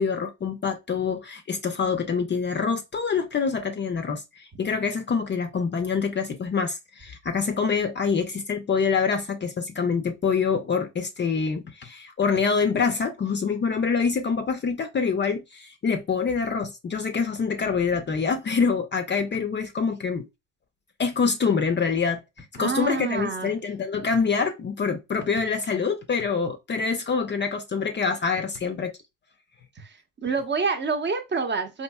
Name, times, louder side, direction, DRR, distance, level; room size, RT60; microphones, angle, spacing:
voice 1, 0.0-4.2 4.6-20.3 21.0-22.2 22.5-28.9, left 5 dB, 30° left, 0.6 m, -25 dB
voice 2, 22.6-23.5 29.8-29.9 30.2-31.8, right 4 dB, 30° right, 0.8 m, -27 dB
4.3 x 2.6 x 2.2 m
hypercardioid pair, 75°, 39 cm